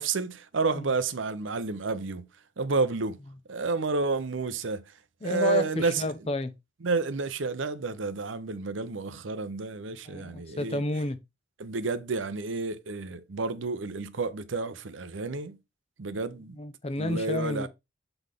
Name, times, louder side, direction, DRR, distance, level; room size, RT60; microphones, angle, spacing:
voice 1, 0.0-2.3 2.6-3.2 3.5-4.9 5.2-6.1 6.8-10.8 11.6-15.6 16.0-16.6 17.0-17.7, right 3 dB, 85° right, 0.7 m, -30 dB
voice 2, 5.2-6.5 10.0-11.2 16.6-17.7, left 1 dB, 30° left, 0.7 m, -31 dB
7.8 x 4.0 x 3.5 m
head